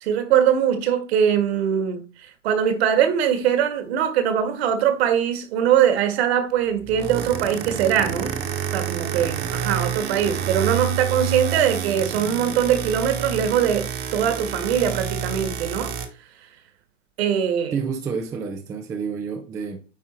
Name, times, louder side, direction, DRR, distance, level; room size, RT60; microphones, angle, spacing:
voice 1, 0.0-2.0 2.4-8.4 8.7-15.9 17.2-17.7, right 9 dB, 55° right, 1.8 m, -22 dB
sound 1, 6.8-16.1, right 9 dB, 25° right, 1.2 m, -29 dB
voice 2, 17.7-19.8, right 5 dB, 10° right, 0.4 m, -29 dB
9.5 x 3.5 x 4.3 m
hypercardioid pair, 130°, 38 cm